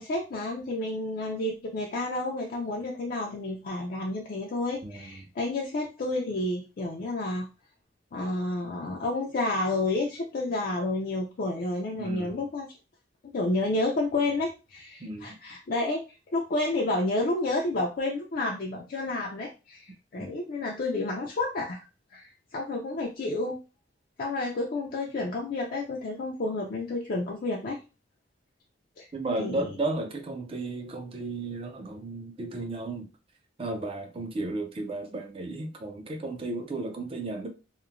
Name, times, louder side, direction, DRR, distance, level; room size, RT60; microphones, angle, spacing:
voice 1, 0.0-7.5 8.1-12.7 13.3-16.0 16.3-21.8 22.1-23.6 24.2-27.8 29.0-29.1 29.4-29.7, left 2 dB, 50° left, 0.4 m, -30 dB
voice 2, 4.8-5.2 12.0-12.4 15.0-15.4 20.2-20.3 29.1-33.1 33.6-37.5, right 2 dB, 30° right, 0.4 m, -34 dB
2.9 x 2.1 x 2.4 m
head